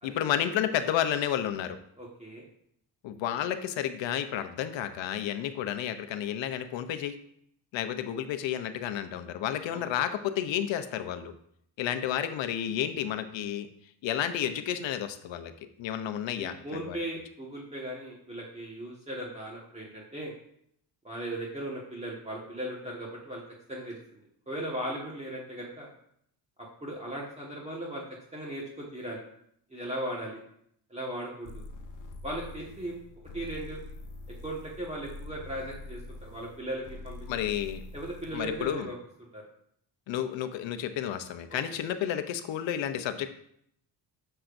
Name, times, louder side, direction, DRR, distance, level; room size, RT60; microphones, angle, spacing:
voice 1, 0.0-1.8 3.0-7.1 7.7-11.3 11.8-13.7 14.0-15.5 15.8-17.0 37.3-37.8 38.3-38.9 40.1-43.3, left 10 dB, 90° left, 10 dB, 0.8 m, -31 dB
voice 2, 2.0-2.4 9.7-9.8 16.4-20.3 21.0-23.4 23.7-24.0 24.5-25.9 26.6-28.0 28.3-29.2 29.7-30.4 30.9-31.6 32.2-33.0 33.3-33.8 34.4-37.2 37.9-39.4 41.5-41.8, right 1 dB, 15° right, -3 dB, 1.6 m, -37 dB
sound 1, 31.4-38.7, left 2 dB, 45° left, 1.2 m, -45 dB
10.0 x 6.7 x 2.6 m, 0.70 s
cardioid pair, 95°, 44 cm